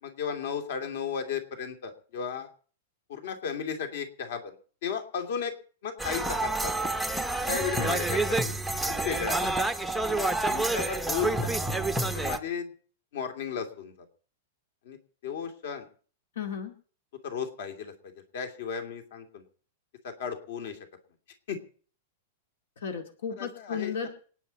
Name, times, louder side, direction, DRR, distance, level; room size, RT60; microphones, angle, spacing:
voice 1, 0.0-2.5 3.1-4.6 4.8-5.5 5.8-6.7 7.5-8.2 8.4-8.5 9.0-9.5 10.2-11.5 12.1-12.7 13.1-13.9 14.8-15.0 15.2-15.9 17.2-17.9 18.3-19.4 20.0-20.8 21.5-21.6 23.4-24.1, left 7 dB, 55° left, 5 dB, 2.7 m, -34 dB
sound 1, 6.0-12.4, right 2 dB, ahead, 0.6 m, -28 dB
voice 2, 7.5-8.0 16.4-16.7 22.8-24.1, left 7 dB, 75° left, 4 dB, 2.2 m, -35 dB
27.0 x 9.6 x 4.2 m, 0.43 s
supercardioid pair, 170°, 0 cm